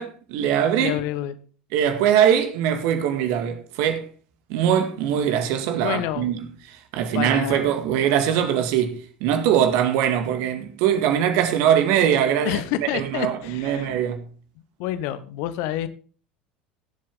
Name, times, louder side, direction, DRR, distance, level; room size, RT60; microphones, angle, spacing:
voice 1, 0.0-1.0 1.7-4.1 4.5-6.5 6.9-14.2, right 9 dB, 60° right, 2.0 m, -22 dB
voice 2, 0.8-1.4 5.8-6.3 7.1-7.6 12.4-14.0 14.8-15.9, left 12 dB, 60° left, 1.0 m, -28 dB
17.0 x 7.6 x 3.7 m
figure-of-eight pair, 70°, 5 cm